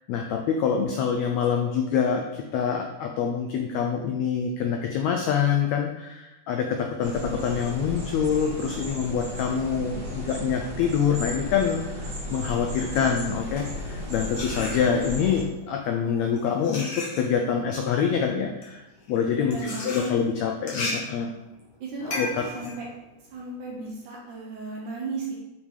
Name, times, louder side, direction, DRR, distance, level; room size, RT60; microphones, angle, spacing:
voice 1, 0.1-21.3 22.1-22.4, left 7 dB, 90° left, 3 dB, 1.5 m, -26 dB
sound 1, 7.0-15.4, equal, 40° right, 2.0 m, -35 dB
sound 2, 13.3-15.3 16.0-23.9, left 2 dB, 55° left, 1.2 m, -37 dB
voice 2, 19.4-20.1 21.8-22.2 22.5-22.8 23.3-25.3, right 3 dB, 70° right, -3 dB, 2.4 m, -35 dB
7.3 x 3.6 x 4.7 m, 0.99 s
omnidirectional pair, 3.8 m